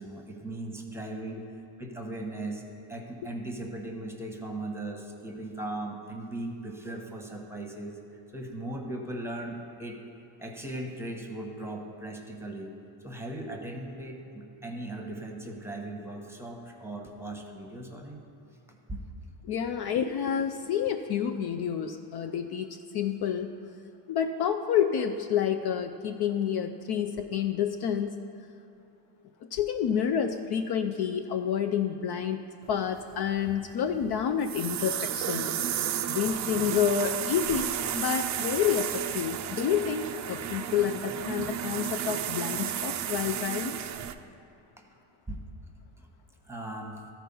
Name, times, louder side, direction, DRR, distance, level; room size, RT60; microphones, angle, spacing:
voice 1, 0.0-1.5 1.8-2.6 2.9-8.0 8.3-10.0 10.4-12.7 13.0-18.2 18.7-19.0 44.8-44.9 45.3-45.4 46.5-47.0, right 1 dB, 5° right, 2 dB, 1.0 m, -38 dB
voice 2, 19.4-23.5 24.1-28.2 29.5-32.4 32.7-35.5 36.1-43.8, left 8 dB, 55° left, 6 dB, 0.5 m, -29 dB
sound 1, 32.9-44.1, right 10 dB, 40° right, 0.4 m, -33 dB
13.5 x 4.6 x 5.4 m, 2.8 s
cardioid pair, 110°, 49 cm